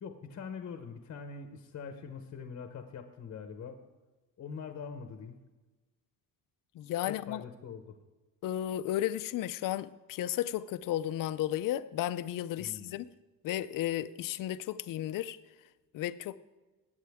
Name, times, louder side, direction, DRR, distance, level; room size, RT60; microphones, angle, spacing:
voice 1, 0.0-3.8 4.4-5.4 7.1-8.0 12.6-12.9, left 6 dB, 40° left, 0.9 m, -43 dB
voice 2, 6.7-7.4 8.4-13.1 13.4-15.4 15.9-16.4, left 12 dB, 65° left, 0.5 m, -33 dB
21.0 x 8.8 x 3.5 m
cardioid pair, 160°, 36 cm